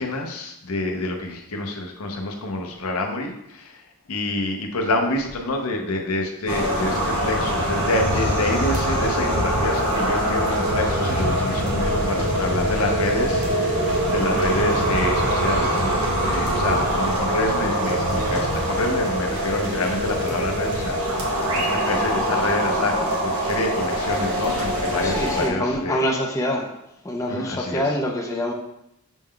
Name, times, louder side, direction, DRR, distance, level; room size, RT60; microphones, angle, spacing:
voice 1, 0.0-3.8 4.1-23.0 23.2-26.0 27.3-27.8, left 2 dB, 85° left, 2 dB, 0.7 m, -27 dB
sound 1, 6.5-25.5, right 1 dB, 75° right, 0.9 m, -23 dB
voice 2, 25.0-26.7 27.0-28.5, equal, 15° left, 0 dB, 0.4 m, -25 dB
6.1 x 2.2 x 3.6 m, 0.82 s
head